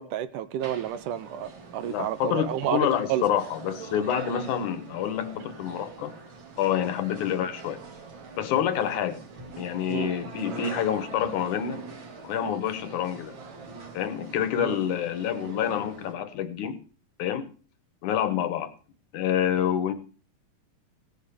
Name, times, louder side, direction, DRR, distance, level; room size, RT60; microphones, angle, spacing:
voice 1, 0.0-2.8 3.1-3.4 9.9-10.1 14.6-14.8, right 11 dB, 80° right, 2.2 m, -30 dB
sound 1, 0.6-16.1, right 4 dB, 40° right, 2.3 m, -43 dB
voice 2, 1.8-6.1 6.6-7.8 8.4-9.2 9.5-11.8 12.2-13.4 13.9-16.8 17.2-17.5 18.0-18.7 19.1-19.9, left 9 dB, 70° left, 2.5 m, -27 dB
17.5 x 7.0 x 6.9 m
omnidirectional pair, 3.9 m